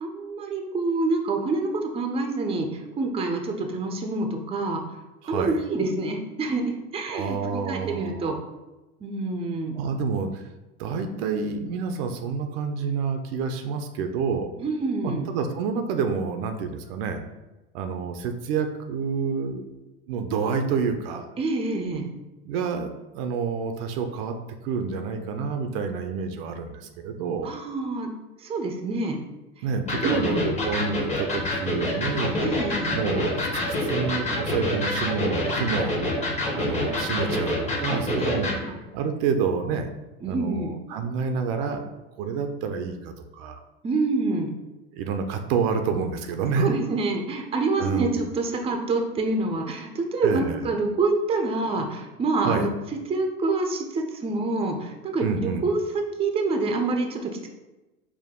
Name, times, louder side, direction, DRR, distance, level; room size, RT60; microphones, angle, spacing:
voice 1, 0.0-4.8 5.3-8.4 9.0-9.8 14.6-15.3 21.4-22.1 27.4-28.1 28.4-29.2 30.0-30.5 32.4-32.9 38.2-38.8 40.2-40.7 43.8-44.5 46.5-52.7 53.1-57.5, right 3 dB, 20° right, 4 dB, 0.5 m, -27 dB
voice 2, 5.2-5.6 7.1-8.3 9.8-10.4 10.8-14.5 15.0-17.2 17.7-19.7 20.1-21.2 22.5-22.9 23.1-24.3 24.6-27.5 29.6-32.4 32.9-36.0 36.5-38.5 38.9-39.9 40.2-41.8 42.2-43.6 44.9-46.8 47.8-48.1 50.2-50.7 52.4-52.7 55.2-55.6, right 5 dB, 65° right, 6 dB, 0.6 m, -28 dB
Electric guitar, 29.9-38.6, left 1 dB, 20° left, 1.0 m, -27 dB
4.7 x 2.2 x 3.6 m, 1.1 s
hypercardioid pair, 100°, 32 cm